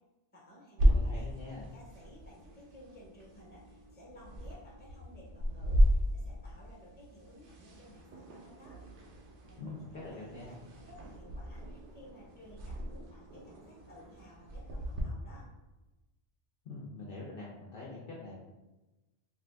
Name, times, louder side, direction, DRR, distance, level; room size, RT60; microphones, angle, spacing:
voice 1, 0.3-1.3 1.6-8.8 9.5-9.8 10.1-15.5, left 1 dB, 10° left, -5 dB, 0.7 m, -56 dB
sound 1, 0.8-15.0, equal, 75° right, 0.9 m, -34 dB
voice 2, 0.9-1.7 9.6-10.5 16.6-18.3, left 3 dB, 60° left, -5 dB, 0.7 m, -44 dB
sound 2, 7.7-14.3, right 3 dB, 60° right, 0.5 m, -56 dB
2.6 x 2.5 x 3.3 m, 1.1 s
omnidirectional pair, 1.2 m